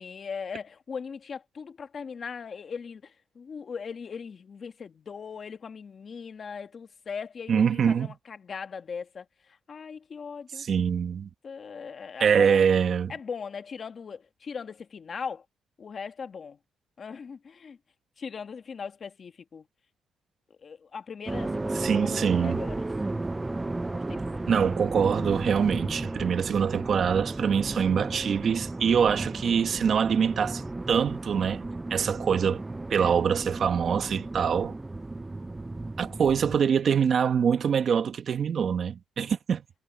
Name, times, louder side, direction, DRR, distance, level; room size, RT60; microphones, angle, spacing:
voice 1, 0.0-10.7 11.4-12.6 13.1-15.4 15.8-16.6 17.0-17.8 18.2-19.6 20.6-22.9 23.8-24.4 36.1-36.3, left 6 dB, 45° left, 1.6 m, -39 dB
voice 2, 7.5-8.1 10.6-11.3 12.2-13.1 21.7-22.6 24.5-32.6 32.9-34.8 36.0-39.6, right 7 dB, 55° right, 1.5 m, -24 dB
sound 1, 21.3-36.6, right 2 dB, 15° right, 0.4 m, -34 dB
cardioid pair, 95°, 0 cm